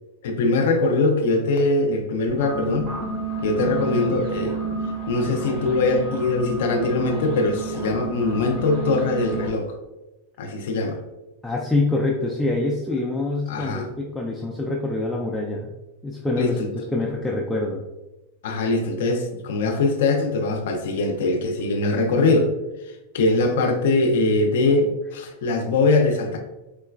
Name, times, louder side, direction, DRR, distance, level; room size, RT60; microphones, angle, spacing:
voice 1, 0.2-2.9 3.4-4.6 5.1-9.7 10.4-11.0 13.5-13.9 16.4-16.7 18.4-22.5 23.1-26.4, left 3 dB, 70° left, 4 dB, 0.4 m, -22 dB
sound 1, 2.3-9.5, right 4 dB, 25° right, 1.5 m, -31 dB
voice 2, 11.4-15.7 16.0-17.8, left 2 dB, 5° left, -3 dB, 0.4 m, -25 dB
4.5 x 2.1 x 2.3 m, 1.0 s
hypercardioid pair, 120°, 0 cm